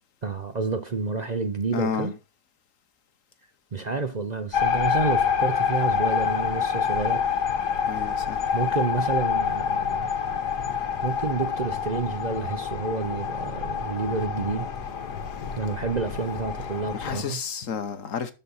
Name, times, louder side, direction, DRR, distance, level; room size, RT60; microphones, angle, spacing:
voice 1, 0.2-2.1 3.7-7.3 8.5-10.1 11.0-14.7 15.6-17.4, right 4 dB, 50° right, 0.5 m, -29 dB
voice 2, 1.7-2.1 7.9-8.5 16.6-16.7 17.0-18.3, left 7 dB, 55° left, 1.2 m, -31 dB
sound 1, 4.5-17.2, left 7 dB, 80° left, 1.8 m, -27 dB
12.5 x 4.4 x 5.5 m
omnidirectional pair, 1.8 m